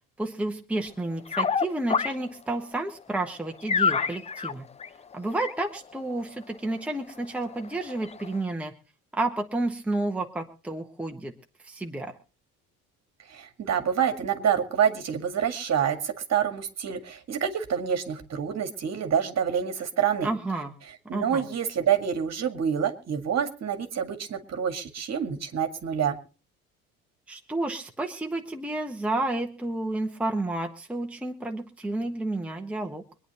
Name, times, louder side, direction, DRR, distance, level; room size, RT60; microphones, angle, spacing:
voice 1, 0.2-4.7 5.1-8.7 9.1-11.3 11.6-12.1 20.2-20.7 21.1-21.5 27.3-33.0, right 2 dB, 5° right, 2 dB, 1.4 m, -31 dB
sound 1, 0.9-2.3 2.6-2.7 3.2-3.3 3.5-6.5 6.8-6.9 7.1-8.4, left 6 dB, 15° left, 0.6 m, -28 dB
voice 2, 13.3-20.3 21.1-26.2, right 8 dB, 35° right, 7 dB, 2.1 m, -27 dB
24.5 x 9.8 x 3.0 m, 0.37 s
figure-of-eight pair, 60°, 43 cm